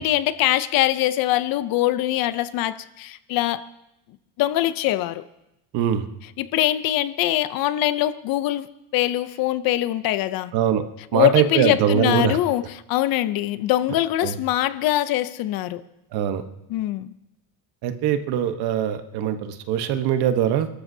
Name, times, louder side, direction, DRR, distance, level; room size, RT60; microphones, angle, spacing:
voice 1, 0.0-3.7 4.4-5.2 6.4-10.5 11.1-15.8 16.7-17.1, left 14 dB, 50° left, 0.7 m, -23 dB
voice 2, 5.7-6.1 10.5-10.8 11.1-12.4 14.2-14.3 16.1-16.4 17.8-20.7, right 9 dB, 60° right, 1.2 m, -22 dB
29.0 x 13.5 x 2.8 m
cardioid pair, 160°, 44 cm